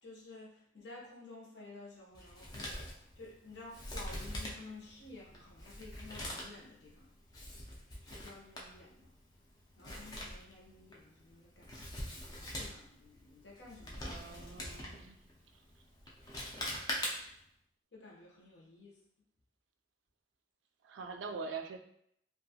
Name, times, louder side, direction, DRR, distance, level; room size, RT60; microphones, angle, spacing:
voice 1, 0.0-2.8 3.2-7.1 8.1-9.1 9.8-14.5 17.9-19.0, left 3 dB, 65° left, -3 dB, 0.8 m, -53 dB
Male speech man speaking, 2.1-17.5, left 1 dB, 20° left, 0.4 m, -44 dB
voice 2, 14.0-15.2 20.8-21.8, right 4 dB, 80° right, 5 dB, 0.3 m, -43 dB
2.7 x 2.3 x 2.7 m, 0.71 s
head